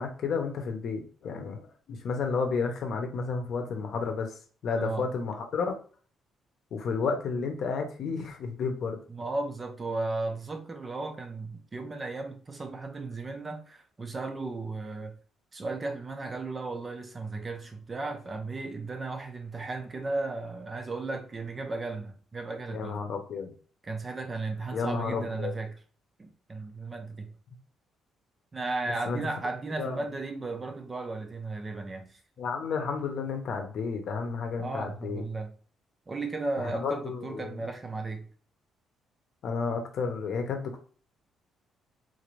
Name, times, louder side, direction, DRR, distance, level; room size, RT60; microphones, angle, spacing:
voice 1, 0.0-4.3 4.6-5.7 6.7-9.0 22.7-23.5 24.7-25.5 29.1-29.2 29.8-30.0 32.4-35.2 36.6-37.6 39.4-40.8, left 5 dB, 50° left, 0.8 m, -31 dB
voice 2, 4.7-5.1 9.1-15.2 15.5-23.0 23.8-25.8 26.2-27.3 28.5-32.2 34.6-35.5 36.1-38.3, right 3 dB, 20° right, 0.5 m, -35 dB
3.9 x 2.5 x 3.2 m
cardioid pair, 165°, 0 cm